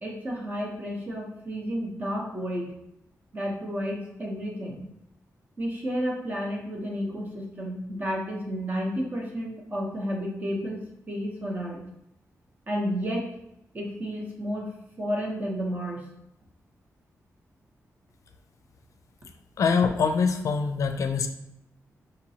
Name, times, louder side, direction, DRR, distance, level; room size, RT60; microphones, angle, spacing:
voice 1, 0.0-2.7 3.3-4.9 5.6-11.8 12.7-13.3 13.7-16.1, equal, 30° right, -1 dB, 0.8 m, -31 dB
voice 2, 19.6-21.3, left 5 dB, 60° left, 6 dB, 0.4 m, -24 dB
5.0 x 2.9 x 2.7 m, 0.79 s
wide cardioid pair, 170°, 6 cm